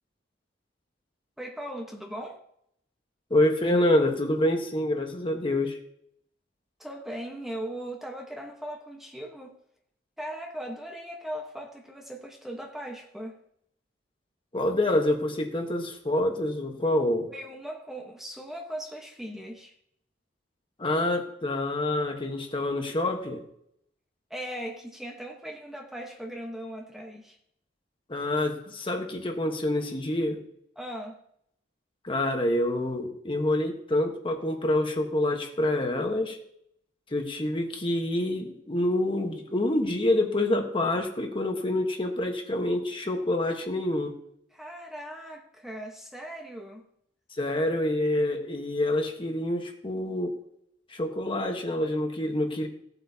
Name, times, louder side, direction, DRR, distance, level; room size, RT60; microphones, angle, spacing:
voice 1, 1.4-2.4 3.3-3.4 6.8-9.6 10.2-13.4 17.3-19.7 24.3-27.4 30.8-31.2 44.5-46.8, equal, ahead, 1.2 m, -39 dB
voice 2, 3.3-5.8 14.5-17.3 20.8-23.4 28.1-30.4 32.0-36.4 37.1-44.1 47.4-50.3 50.9-52.7, left 1 dB, 30° left, 1.3 m, -27 dB
17.0 x 8.0 x 2.8 m
head